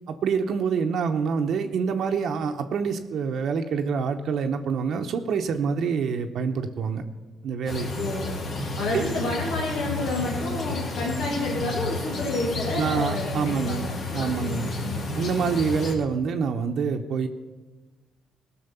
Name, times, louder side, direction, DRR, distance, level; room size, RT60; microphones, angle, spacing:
voice 1, 0.1-7.0 7.4-7.9 8.9-9.0 12.8-13.9 14.1-14.7 15.2-17.3, right 6 dB, 70° right, 5 dB, 0.8 m, -26 dB
sound 1, 7.7-15.9, left 2 dB, 60° left, 2.2 m, -31 dB
voice 2, 8.0-8.4 8.8-15.0, left 2 dB, 85° left, -3 dB, 2.1 m, -30 dB
16.5 x 6.3 x 6.8 m, 1.2 s
cardioid pair, 90°, 0 cm